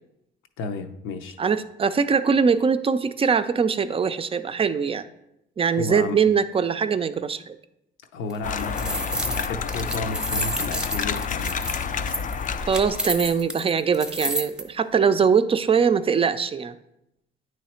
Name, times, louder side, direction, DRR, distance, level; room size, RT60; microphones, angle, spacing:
voice 1, 0.6-1.4 5.7-6.2 8.1-11.6, left 3 dB, 85° left, 6 dB, 0.7 m, -32 dB
voice 2, 1.4-5.1 5.6-7.6 12.7-16.8, right 6 dB, 30° right, 11 dB, 0.4 m, -22 dB
sound 1, 8.3-14.6, equal, 5° right, 0.7 m, -30 dB
sound 2, 8.4-13.4, left 6 dB, 40° left, 0.4 m, -29 dB
9.2 x 3.1 x 4.3 m, 0.83 s
cardioid pair, 90°, 20 cm